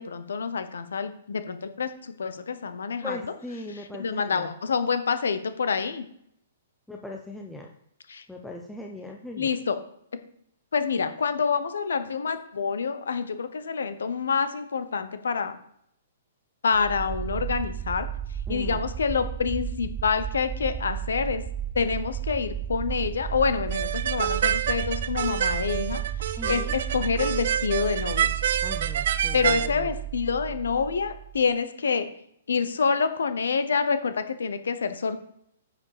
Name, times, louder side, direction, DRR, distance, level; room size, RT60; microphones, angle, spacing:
voice 1, 0.0-3.3 3.7-6.1 8.1-8.2 9.4-9.8 10.7-15.6 16.6-18.1 18.5-21.4 21.7-28.3 29.3-32.1 32.5-35.2, left 5 dB, 80° left, 10 dB, 0.9 m, -27 dB
voice 2, 3.0-4.5 6.9-7.7 8.3-9.5 18.5-18.8 26.4-26.7 28.6-29.9, left 2 dB, 5° left, 0 dB, 0.9 m, -39 dB
sound 1, 16.7-31.5, right 10 dB, 15° right, 0.4 m, -33 dB
sound 2, 23.7-29.7, right 9 dB, 65° right, 0.5 m, -27 dB
9.5 x 5.2 x 5.0 m, 0.71 s
hypercardioid pair, 125°, 0 cm